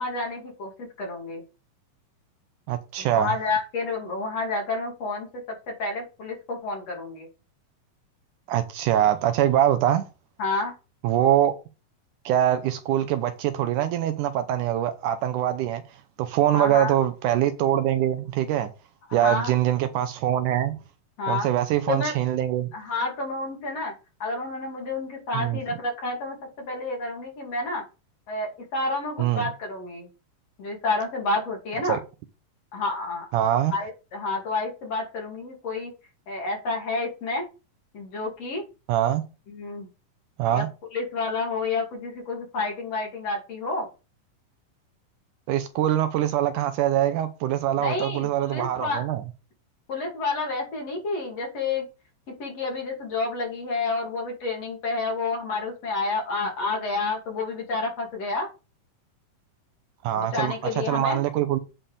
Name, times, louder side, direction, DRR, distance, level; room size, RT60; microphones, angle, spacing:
voice 1, 0.0-1.4 3.0-7.3 10.4-10.8 16.5-17.0 19.1-19.5 21.2-21.5 21.9-22.2 22.7-23.9 24.2-27.8 28.3-30.1 30.6-32.0 32.7-33.3 33.7-35.9 36.3-37.4 37.9-38.6 39.5-39.9 40.5-40.7 40.9-43.9 47.8-49.1 49.9-51.9 52.4-58.5 60.1-61.2, left 3 dB, 50° left, 3.4 m, -29 dB
voice 2, 2.7-3.3 8.5-10.1 11.0-11.6 12.3-15.8 16.2-18.7 19.1-20.7 21.3-22.7 25.3-25.6 29.2-29.5 31.9-32.0 33.3-33.7 38.9-39.2 40.4-40.7 45.5-49.2 60.0-60.5 60.9-61.6, right 11 dB, 80° right, 2.0 m, -23 dB
9.0 x 4.4 x 5.2 m
omnidirectional pair, 3.9 m